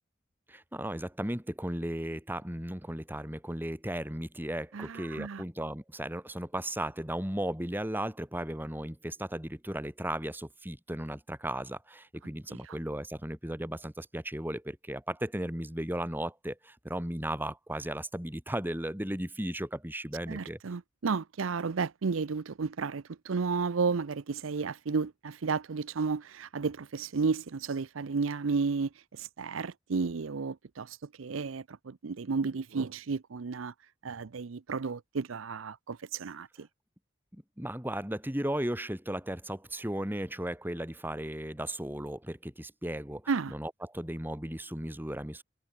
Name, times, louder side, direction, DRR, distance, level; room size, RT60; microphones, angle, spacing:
voice 1, 0.5-20.6 37.3-43.2 43.5-45.4, right 1 dB, 10° right, 2.8 m, -36 dB
voice 2, 4.7-5.4 12.6-12.8 20.3-33.7 34.0-36.7 43.3-43.5, right 4 dB, 90° right, 0.6 m, -33 dB
head